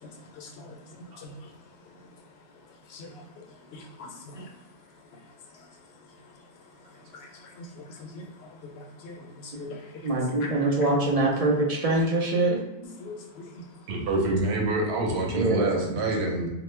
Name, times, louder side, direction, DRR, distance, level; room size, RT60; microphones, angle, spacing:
voice 1, 0.0-10.5 13.0-13.9, left 2 dB, 75° left, 0.8 m, -45 dB
voice 2, 10.0-12.6 15.3-15.8, right 2 dB, 50° right, 0.5 m, -24 dB
voice 3, 13.9-16.5, right 2 dB, 90° right, 1.0 m, -26 dB
2.9 x 2.1 x 3.2 m
omnidirectional pair, 1.1 m